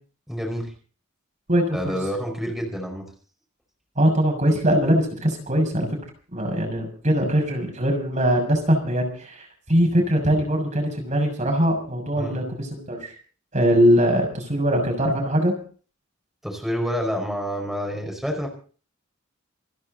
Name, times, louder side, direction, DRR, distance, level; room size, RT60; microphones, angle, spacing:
voice 1, 0.3-0.7 1.7-3.0 12.2-12.4 16.4-18.5, equal, ahead, 1 dB, 5.1 m, -28 dB
voice 2, 1.5-2.0 4.0-5.9 6.3-13.1 13.5-15.5, equal, 35° right, 2 dB, 6.5 m, -21 dB
28.5 x 11.0 x 4.0 m, 0.41 s
head